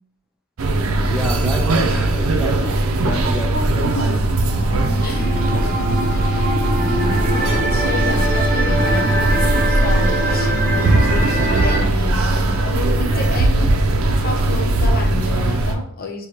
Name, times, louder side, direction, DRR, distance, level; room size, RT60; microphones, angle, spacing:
sound 1, 0.6-15.7, right 2 dB, 75° right, 0.5 m, -19 dB
voice 1, 0.9-4.6 5.9-6.5 12.4-12.8 13.1-13.7, left 1 dB, 5° right, 1 dB, 0.7 m, -31 dB
sound 2, 4.4-11.8, right 1 dB, 40° right, 0.8 m, -23 dB
voice 2, 5.0-5.3 7.3-13.7 14.2-16.3, left 1 dB, 45° left, 3 dB, 0.7 m, -30 dB
6.3 x 2.3 x 2.9 m, 0.63 s
head